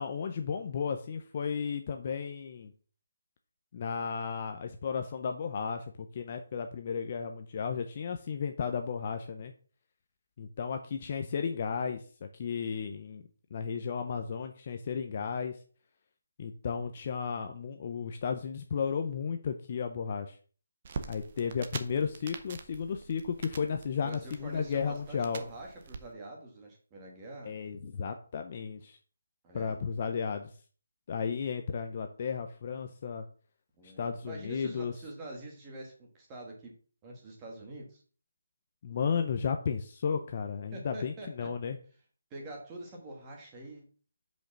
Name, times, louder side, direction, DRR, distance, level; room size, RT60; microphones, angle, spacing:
voice 1, 0.0-2.7 3.7-9.5 10.4-13.2 13.5-15.6 16.4-20.4 21.1-25.4 27.4-29.0 29.5-30.5 31.1-33.2 33.8-34.9 38.8-41.8, left 6 dB, 30° left, 6 dB, 0.6 m, -34 dB
sound 1, 20.8-26.0, right 5 dB, 30° right, 0.8 m, -45 dB
voice 2, 24.0-27.5 29.4-30.1 33.8-36.7 37.0-38.0 40.7-41.5 42.3-43.8, right 1 dB, 15° right, 0 dB, 1.4 m, -45 dB
6.4 x 5.3 x 5.9 m, 0.41 s
hypercardioid pair, 175°, 0 cm